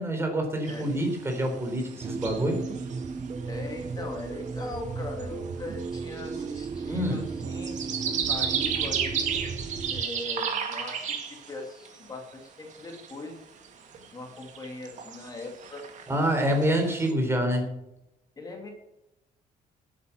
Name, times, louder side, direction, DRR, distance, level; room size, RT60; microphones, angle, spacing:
voice 1, 0.0-2.6 6.9-7.2 16.1-17.7, right 1 dB, 15° right, 4 dB, 3.8 m, -26 dB
sound 1, 0.7-3.1 3.4-3.5 3.7-4.2 4.5-4.6 5.1-5.2 5.8-12.0 12.3-12.4 12.7-13.2 13.6-14.1 14.4-17.1, right 7 dB, 50° right, 2.1 m, -33 dB
sound 2, 2.0-10.0, right 4 dB, 35° right, 0.9 m, -35 dB
voice 2, 3.5-9.6 9.9-13.4 14.1-15.9 18.4-18.7, left 3 dB, 25° left, 1 dB, 2.6 m, -40 dB
13.0 x 8.6 x 6.0 m, 0.88 s
cardioid pair, 150°, 15 cm